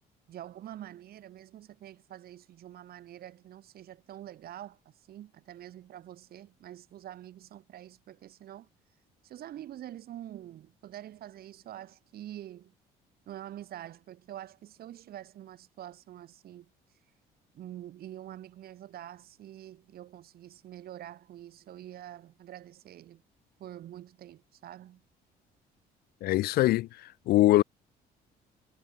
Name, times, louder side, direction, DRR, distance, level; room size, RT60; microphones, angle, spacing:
voice 1, 0.3-4.8 5.1-8.7 9.2-12.7 13.3-16.7 17.5-23.2 23.6-25.0, right 12 dB, 65° right, 6.8 m, -46 dB
voice 2, 26.2-26.9 27.3-27.6, left 16 dB, 65° left, 0.4 m, -22 dB
cardioid pair, 110°, 17 cm